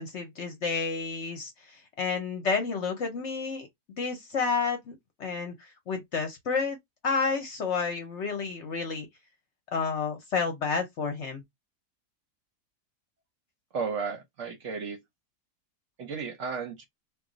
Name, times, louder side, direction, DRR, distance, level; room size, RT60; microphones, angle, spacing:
voice 1, 0.0-3.7 4.0-4.9 5.2-6.8 7.0-9.1 9.7-11.4, left 5 dB, 60° left, 0.8 m, -30 dB
voice 2, 13.7-15.0 16.0-16.8, right 5 dB, 60° right, 0.9 m, -33 dB
2.5 x 2.3 x 3.7 m
omnidirectional pair, 1.7 m